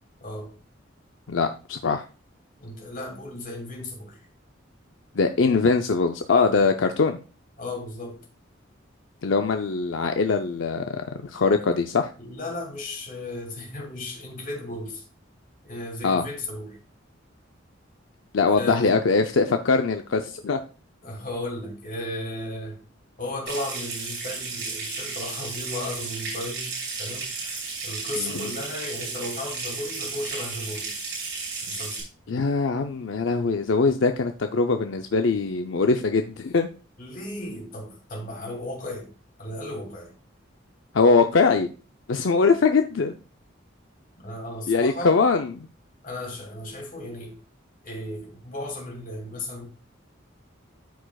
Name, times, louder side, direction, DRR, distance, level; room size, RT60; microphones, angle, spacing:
voice 1, 0.2-0.5 2.6-4.2 6.3-6.6 7.6-8.2 12.2-15.0 15.6-16.8 18.5-19.0 21.0-22.8 23.2-26.7 27.0-31.0 31.6-32.0 37.0-39.1 39.4-40.1 44.2-45.2 46.0-47.4 47.8-49.7, left 1 dB, 45° left, 2.5 m, -35 dB
voice 2, 1.3-2.0 5.1-7.2 9.2-12.1 16.0-16.2 18.3-20.6 28.2-28.5 32.3-36.7 40.9-41.7 42.1-43.2 44.7-45.7, left 4 dB, 75° left, 0.5 m, -22 dB
Water tap faucet / Sink (filling or washing) / Trickle dribble, 23.5-32.0, right 4 dB, 60° right, 4.3 m, -33 dB
13.0 x 4.8 x 2.3 m
head